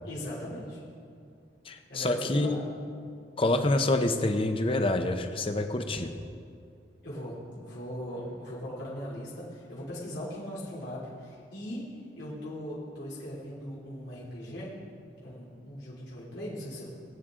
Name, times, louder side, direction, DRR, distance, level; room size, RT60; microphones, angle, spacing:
voice 1, 0.0-0.8 1.9-2.7 7.0-11.8 12.2-14.8 15.2-16.9, equal, 85° left, -8 dB, 3.1 m, -39 dB
voice 2, 1.7-2.6 3.4-6.1, left 2 dB, 30° left, 7 dB, 0.8 m, -27 dB
20.0 x 8.9 x 3.8 m, 2.4 s
head